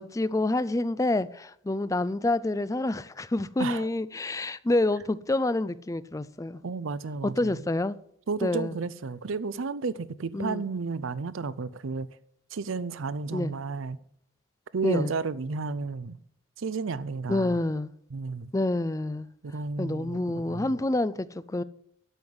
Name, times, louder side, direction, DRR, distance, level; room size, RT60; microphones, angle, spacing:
voice 1, 0.0-6.6 7.2-8.0 8.4-8.8 10.3-10.6 13.3-13.5 14.8-15.1 17.3-17.9 18.5-19.3 19.8-21.6, left 2 dB, 15° left, 0.4 m, -28 dB
voice 2, 6.6-7.6 8.3-12.1 12.5-14.0 14.7-16.2 16.6-17.6 18.1-18.5 19.4-20.7, right 4 dB, 75° right, 0.5 m, -32 dB
12.5 x 5.5 x 7.8 m
head